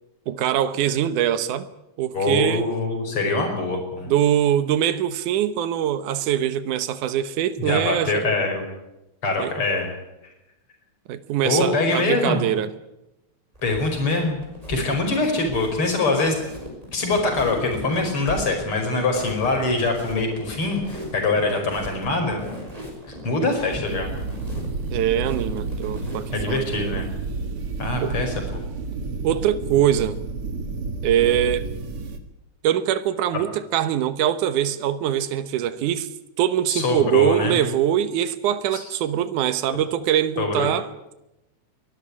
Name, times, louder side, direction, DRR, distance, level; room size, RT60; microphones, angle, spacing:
voice 1, 0.3-1.7 2.0-2.7 4.1-8.2 9.4-9.5 11.1-12.7 24.9-27.0 28.0-28.1 29.2-30.2 31.0-31.7 32.6-36.1 36.4-40.9, right 10 dB, 90° right, 12 dB, 2.6 m, -23 dB
voice 2, 2.1-4.1 7.6-8.6 9.2-9.9 11.4-12.5 13.6-14.4 14.7-16.4 16.9-22.5 23.2-24.1 26.3-27.1 27.8-28.7 36.7-37.6 38.7-38.8 40.4-40.7, left 2 dB, 45° left, 4 dB, 5.9 m, -23 dB
sound 1, 13.5-26.7, equal, 10° right, 5.8 m, -37 dB
sound 2, 23.8-32.2, right 3 dB, 50° right, 2.4 m, -30 dB
23.0 x 13.5 x 9.8 m, 0.91 s
omnidirectional pair, 3.5 m